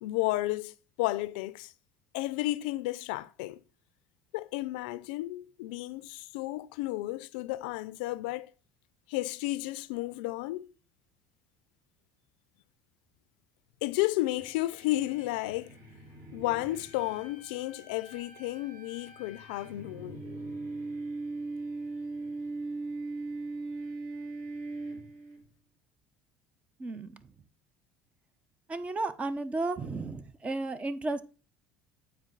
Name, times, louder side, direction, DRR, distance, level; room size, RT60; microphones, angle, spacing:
voice 1, 0.0-1.7 2.1-3.6 4.3-8.5 9.1-10.7 13.8-15.8 16.3-20.2, left 18 dB, 85° left, 0.4 m, -32 dB
sound 1, 14.4-25.4, right 3 dB, 50° right, 3.2 m, -40 dB
voice 2, 26.8-27.2 28.7-31.2, right 2 dB, 25° right, 0.7 m, -33 dB
8.5 x 4.6 x 3.8 m
supercardioid pair, 95°, 5 cm